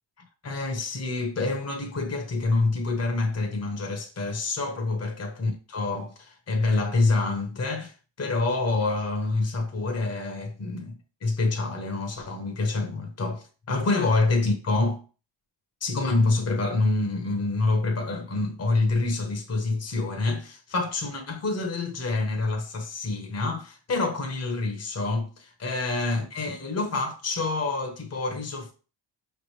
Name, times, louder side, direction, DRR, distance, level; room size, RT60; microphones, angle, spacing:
voice 1, 0.4-15.0 15.8-28.7, left 3 dB, 35° left, 1.1 m, -27 dB
4.9 x 3.3 x 3.2 m
cardioid pair, 80°, 46 cm